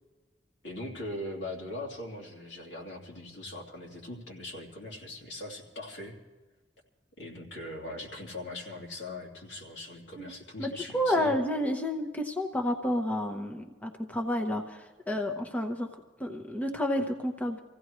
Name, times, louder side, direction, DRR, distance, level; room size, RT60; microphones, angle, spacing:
voice 1, 0.6-6.1 7.2-11.3, left 1 dB, 80° left, -1 dB, 3.0 m, -40 dB
voice 2, 10.6-15.9 16.2-17.6, left 1 dB, 10° left, 3 dB, 0.8 m, -30 dB
25.5 x 15.5 x 3.1 m, 1.2 s
head